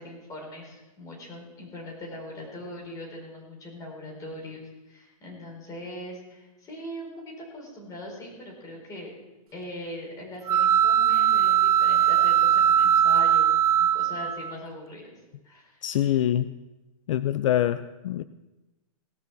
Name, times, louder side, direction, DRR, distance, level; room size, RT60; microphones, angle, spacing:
voice 1, 0.0-9.1 9.5-15.0 15.4-15.8, left 1 dB, 20° left, -1 dB, 4.4 m, -41 dB
sound 1, 10.5-14.5, right 10 dB, 80° right, 0.6 m, -20 dB
voice 2, 15.8-16.5 17.1-18.2, left 11 dB, 60° left, 13 dB, 0.5 m, -25 dB
18.0 x 6.4 x 7.0 m, 1.1 s
hypercardioid pair, 150°, 18 cm